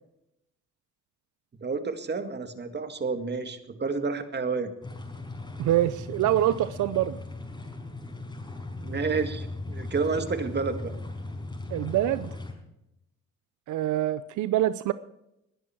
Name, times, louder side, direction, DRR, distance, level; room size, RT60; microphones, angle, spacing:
voice 1, 1.6-4.7 8.8-10.9, right 4 dB, 35° right, 8 dB, 2.1 m, -30 dB
sound 1, 4.8-12.5, left 2 dB, 15° left, 4.9 m, -38 dB
voice 2, 5.6-7.2 11.7-12.3 13.7-14.9, right 13 dB, 80° right, 14 dB, 0.6 m, -25 dB
20.5 x 11.0 x 4.5 m, 0.83 s
cardioid pair, 90°, 30 cm